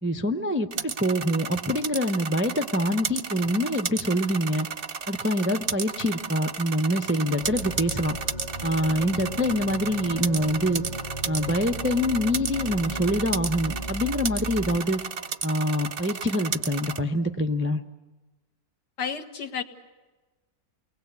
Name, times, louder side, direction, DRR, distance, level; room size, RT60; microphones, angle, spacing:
voice 1, 0.0-4.7 5.1-8.2 8.6-10.8 11.3-15.0 15.4-17.8, equal, 15° right, 6 dB, 0.5 m, -25 dB
sound 1, 0.7-17.0, right 6 dB, 40° right, 0.9 m, -33 dB
sound 2, 7.4-14.8, right 1 dB, 30° left, 0.9 m, -36 dB
voice 2, 19.0-19.6, left 6 dB, 70° left, 7 dB, 2.2 m, -31 dB
29.5 x 20.5 x 8.3 m, 1.2 s
omnidirectional pair, 1.8 m